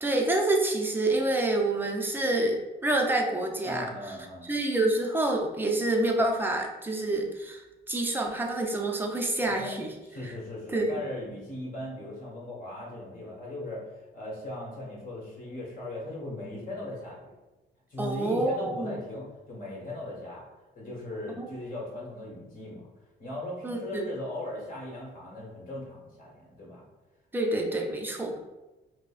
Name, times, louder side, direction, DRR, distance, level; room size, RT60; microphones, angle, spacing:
voice 1, 0.0-3.8 4.4-9.9 10.2-10.3 10.7-11.0 18.0-19.0 21.4-21.5 23.6-24.1 27.3-28.4, right 2 dB, 10° right, 1 dB, 0.6 m, -27 dB
voice 2, 3.6-4.5 9.5-9.7 10.0-13.9 14.1-17.3 17.9-20.4 20.7-22.9 23.2-26.8, left 1 dB, 45° left, -3 dB, 1.5 m, -38 dB
5.0 x 2.1 x 2.4 m, 1.1 s
cardioid pair, 90°, 20 cm